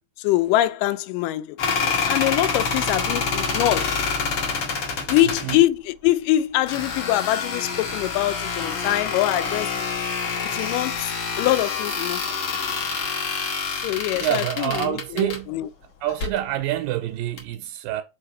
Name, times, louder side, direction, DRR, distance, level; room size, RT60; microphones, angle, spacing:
voice 1, 0.2-4.0 5.1-9.7 10.5-12.2 13.8-15.7, left 15 dB, 80° left, 2.1 m, -24 dB
sound 1, 1.6-5.6 6.7-15.4 16.1-16.4 17.4-17.5, left 5 dB, 60° left, 1.6 m, -27 dB
voice 2, 14.2-15.6 16.0-18.0, right 13 dB, 85° right, 2.3 m, -27 dB
5.0 x 3.9 x 5.4 m
omnidirectional pair, 4.0 m